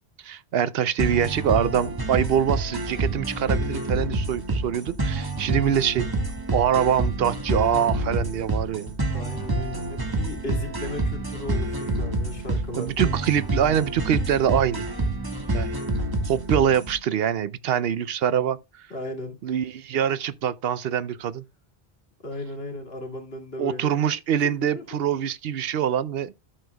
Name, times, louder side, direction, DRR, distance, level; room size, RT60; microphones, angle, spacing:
voice 1, 0.2-6.1 6.5-8.9 12.8-14.9 15.5-15.8 16.2-18.6 19.4-21.4 23.6-26.3, right 9 dB, 70° right, 0.8 m, -24 dB
sound 1, 1.0-17.0, right 2 dB, 20° right, 1.5 m, -28 dB
voice 2, 9.1-13.1 18.9-19.4 22.2-24.0 24.4-25.0, left 1 dB, 65° left, 2.3 m, -36 dB
13.0 x 6.7 x 2.2 m
omnidirectional pair, 1.1 m